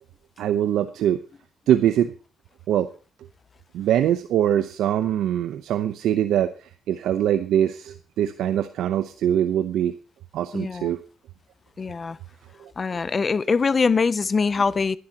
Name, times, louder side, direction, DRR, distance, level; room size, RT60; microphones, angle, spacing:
voice 1, 0.4-1.2 1.7-2.1 2.7-2.9 3.7-9.9 10.3-11.0 12.6-12.7, right 10 dB, 80° right, 0.8 m, -23 dB
voice 2, 10.5-10.9 11.8-12.2 12.8-15.0, left 5 dB, 35° left, 0.5 m, -23 dB
19.0 x 11.5 x 2.9 m
cardioid pair, 90°, 0 cm